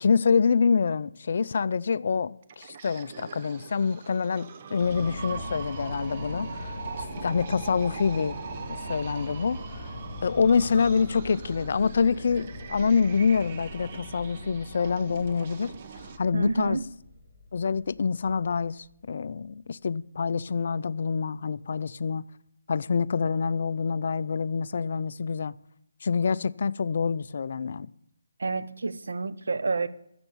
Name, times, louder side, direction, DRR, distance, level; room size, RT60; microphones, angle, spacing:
voice 1, 0.0-8.4 8.7-9.9 10.2-15.7 16.2-16.8 17.5-22.3 22.7-25.6 26.0-27.9, left 5 dB, 50° left, 0.4 m, -26 dB
sound 1, 2.4-16.2, right 7 dB, 30° right, 0.7 m, -42 dB
sound 2, 4.8-19.1, left 1 dB, 5° left, 3.3 m, -41 dB
voice 2, 16.3-16.8 28.4-29.9, right 3 dB, 70° right, 0.8 m, -29 dB
13.5 x 7.9 x 7.1 m
hypercardioid pair, 170°, 0 cm